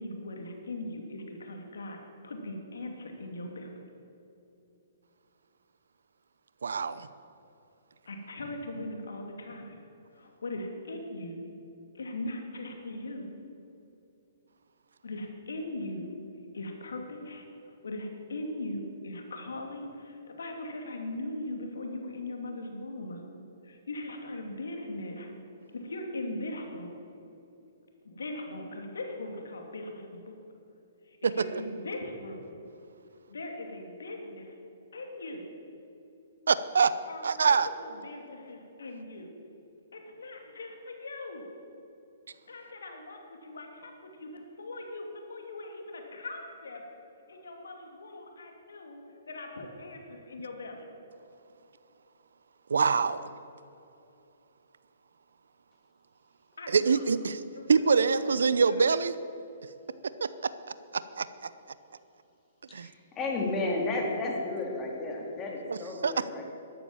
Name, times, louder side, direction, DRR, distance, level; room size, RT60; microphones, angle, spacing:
voice 1, 0.0-2.0 2.2-3.8 8.1-9.8 10.1-11.5 11.9-13.3 15.0-16.1 16.5-23.2 23.6-25.3 25.7-26.9 28.0-30.4 31.0-32.5 33.3-34.5 34.9-35.4 37.0-39.3 39.9-41.4 42.5-46.8 47.3-50.9 56.6-57.2 57.5-58.2 58.4-58.8, left 2 dB, 75° left, 3 dB, 2.6 m, -40 dB
voice 2, 6.6-7.1 31.2-31.3 36.5-36.9 37.2-37.7 52.7-53.3 56.7-57.3 57.7-59.1 60.2-60.3 61.2-61.3 62.7-62.9 65.7-65.8 66.0-66.1, right 5 dB, 75° right, 15 dB, 0.6 m, -24 dB
voice 3, 62.7-66.4, left 2 dB, 20° left, -1 dB, 3.2 m, -32 dB
13.0 x 12.0 x 7.3 m, 2.8 s
figure-of-eight pair, 125°, 0 cm